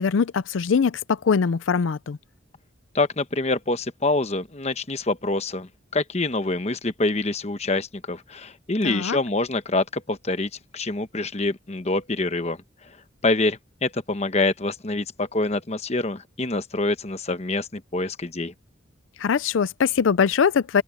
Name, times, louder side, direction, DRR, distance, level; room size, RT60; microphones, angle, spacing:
voice 1, 0.0-2.2 8.8-9.2 19.2-20.8, left 6 dB, 85° left, 0.5 m, -22 dB
voice 2, 2.9-12.6 13.2-18.5, left 2 dB, 35° left, 1.0 m, -26 dB
open air
head